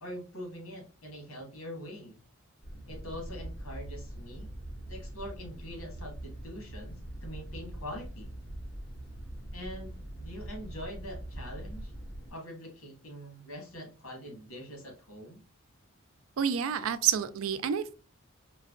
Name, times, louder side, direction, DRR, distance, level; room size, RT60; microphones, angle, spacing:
voice 1, 0.0-2.2 2.9-4.5 4.9-8.3 9.5-11.9 12.3-15.4, equal, 80° left, 1.5 m, -43 dB
sound 1, 2.6-12.3, right 1 dB, 50° left, 1.4 m, -43 dB
voice 2, 16.4-17.9, right 8 dB, 70° right, 0.4 m, -28 dB
4.6 x 2.2 x 2.4 m
head